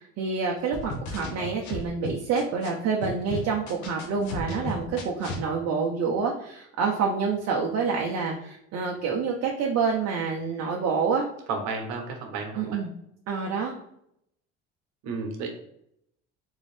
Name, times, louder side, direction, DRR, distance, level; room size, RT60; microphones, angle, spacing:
voice 1, 0.2-11.3 12.6-12.9 13.3-13.7, right 5 dB, 55° right, -1 dB, 0.7 m, -27 dB
sound 1, 0.7-2.7 3.0-5.4, left 2 dB, 75° left, 0.9 m, -35 dB
voice 2, 11.5-12.8 15.0-15.5, right 4 dB, 80° right, 3 dB, 1.1 m, -32 dB
3.9 x 2.7 x 3.3 m, 0.75 s
supercardioid pair, 90°, 29 cm